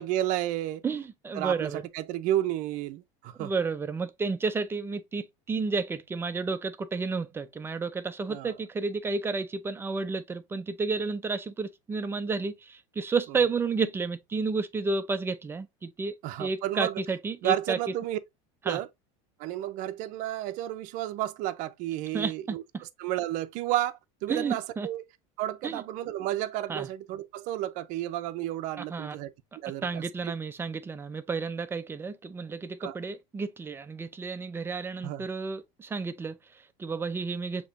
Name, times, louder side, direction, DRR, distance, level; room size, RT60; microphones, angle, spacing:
voice 1, 0.0-0.8 1.4-3.5 8.3-8.5 16.2-16.9 17.4-18.2 18.6-18.9 19.4-22.6 23.0-25.0 25.4-29.3 29.6-30.0 32.8-32.9 35.0-35.3, right 13 dB, 55° right, 0.6 m, -31 dB
voice 2, 0.8-1.8 3.4-17.8 18.7-18.8 22.1-22.8 24.3-24.9 25.6-25.8 26.7-26.9 28.8-29.2 29.8-37.7, right 4 dB, 15° right, 0.6 m, -31 dB
6.5 x 3.0 x 2.6 m
supercardioid pair, 140°, 16 cm